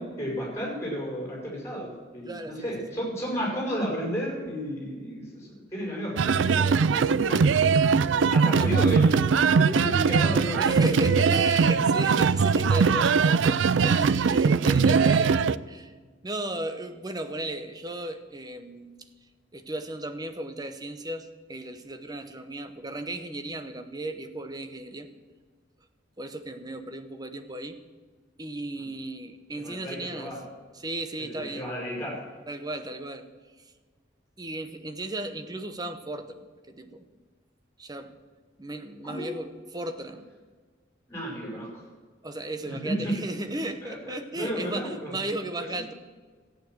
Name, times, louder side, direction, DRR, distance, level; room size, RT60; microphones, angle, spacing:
voice 1, 0.0-7.8 8.3-9.2 9.5-11.4 28.8-28.9 29.5-30.4 31.2-32.2 39.0-39.3 41.1-41.8 42.6-43.1 43.8-44.0 44.3-45.1, equal, 15° left, -3 dB, 5.6 m, -33 dB
voice 2, 2.3-3.0 6.6-7.2 8.5-8.7 10.6-15.9 16.2-19.0 19.5-25.1 26.2-27.8 28.4-30.3 30.7-31.7 32.5-33.2 34.4-37.1 37.8-38.2 38.6-40.3 42.2-45.9, right 1 dB, 20° right, 8 dB, 0.9 m, -35 dB
sound 1, 6.2-15.5, right 5 dB, 70° right, 0.4 m, -21 dB
13.5 x 9.1 x 7.8 m, 1.5 s
head